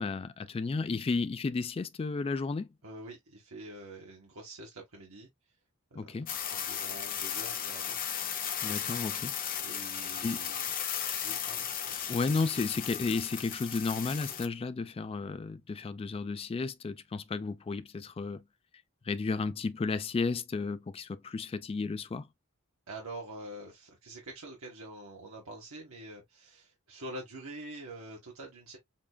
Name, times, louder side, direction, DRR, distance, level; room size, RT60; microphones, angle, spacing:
voice 1, 0.0-2.7 5.9-6.3 8.6-9.3 10.2-10.4 12.1-18.4 19.0-22.3, left 4 dB, 30° left, 0.3 m, -33 dB
voice 2, 2.8-5.5 5.9-6.0 6.5-8.0 9.6-10.6 11.2-12.0 22.9-28.8, right 1 dB, 90° right, 1.3 m, -46 dB
sound 1, 6.3-14.5, left 9 dB, 45° left, 1.0 m, -35 dB
7.2 x 2.4 x 2.3 m
head